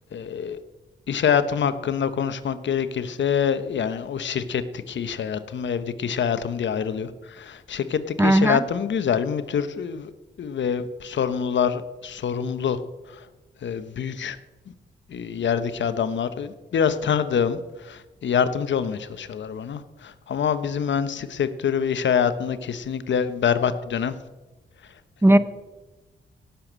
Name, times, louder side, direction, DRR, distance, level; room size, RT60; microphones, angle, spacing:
voice 1, 0.1-0.6 1.1-7.1 7.4-10.1 10.4-12.8 13.6-14.4 15.1-24.1 25.3-25.4, left 7 dB, 70° left, 12 dB, 1.0 m, -25 dB
voice 2, 8.2-8.6 25.2-25.4, right 1 dB, 10° right, 14 dB, 0.9 m, -16 dB
17.5 x 6.9 x 7.4 m, 1.1 s
cardioid pair, 70°, 20 cm